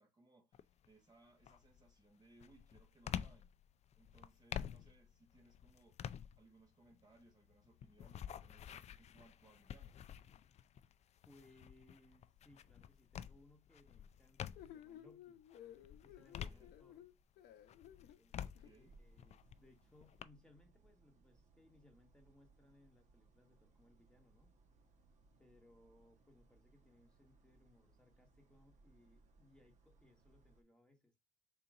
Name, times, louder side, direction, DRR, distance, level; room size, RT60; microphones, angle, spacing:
voice 1, 0.0-3.5 4.0-6.0 6.4-10.0 16.2-16.7 18.4-18.9, right 2 dB, 25° right, 1.2 m, -67 dB
sound 1, 0.5-0.9 1.4-14.9 15.4-17.2 17.6-20.2, left 9 dB, 40° left, 0.4 m, -49 dB
voice 2, 11.3-15.4 16.0-17.1 18.0-24.5 25.4-31.1, left 2 dB, 5° left, 1.2 m, -67 dB
sound 2, 14.5-18.7, left 10 dB, 75° left, 0.7 m, -56 dB
sound 3, 18.5-30.6, right 3 dB, 45° right, 1.2 m, -69 dB
3.8 x 2.8 x 4.7 m
cardioid pair, 110°, 17 cm